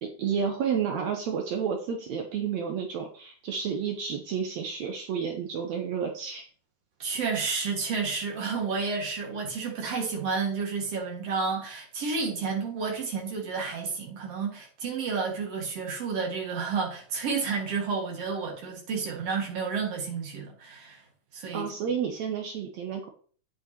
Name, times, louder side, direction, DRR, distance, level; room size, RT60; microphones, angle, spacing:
voice 1, 0.0-6.4 21.5-23.1, right 7 dB, 70° right, 2.1 m, -31 dB
voice 2, 7.0-21.0 21.3-21.7, right 5 dB, 55° right, 3.0 m, -31 dB
9.1 x 7.7 x 3.0 m
omnidirectional pair, 3.5 m